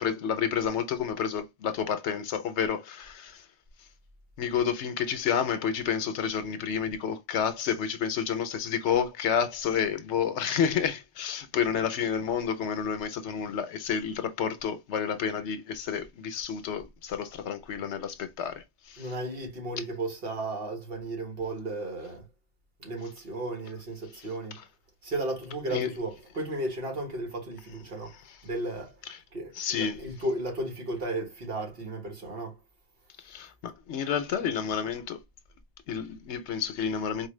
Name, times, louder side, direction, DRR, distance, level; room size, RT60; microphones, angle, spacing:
voice 1, 0.0-3.4 4.4-19.1 25.7-25.9 28.1-28.4 29.1-29.2 29.5-30.1 33.2-35.2 35.9-37.3, left 7 dB, 85° left, 1.0 m, -30 dB
voice 2, 19.0-22.2 22.8-24.6 25.0-28.1 28.4-29.0 29.3-32.6, right 2 dB, 60° right, 1.5 m, -34 dB
4.4 x 2.1 x 3.2 m
omnidirectional pair, 1.1 m